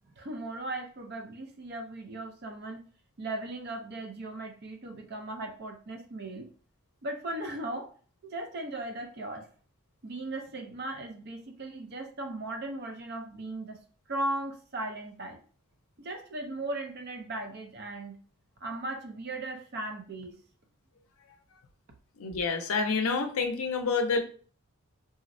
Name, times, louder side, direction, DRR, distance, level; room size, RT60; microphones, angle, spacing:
voice 1, 0.2-2.9 3.2-6.5 7.0-7.9 8.2-9.5 10.0-13.8 14.1-15.4 16.0-18.2 18.6-20.4, right 2 dB, 45° right, 3 dB, 0.5 m, -37 dB
voice 2, 22.2-24.2, left 4 dB, 75° left, 6 dB, 0.5 m, -28 dB
3.7 x 2.1 x 2.6 m, 0.41 s
head